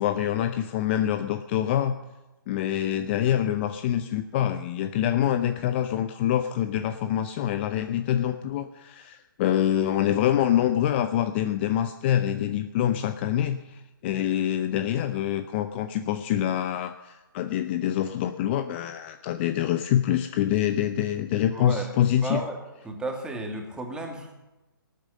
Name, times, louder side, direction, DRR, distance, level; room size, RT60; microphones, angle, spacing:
voice 1, 0.0-2.0 2.5-22.5, left 11 dB, 30° left, 10 dB, 0.6 m, -25 dB
voice 2, 21.5-21.9 22.2-22.6 22.8-24.3, right 2 dB, 5° right, 2 dB, 2.2 m, -33 dB
18.5 x 9.2 x 6.6 m, 1.0 s
figure-of-eight pair, 135°, 12 cm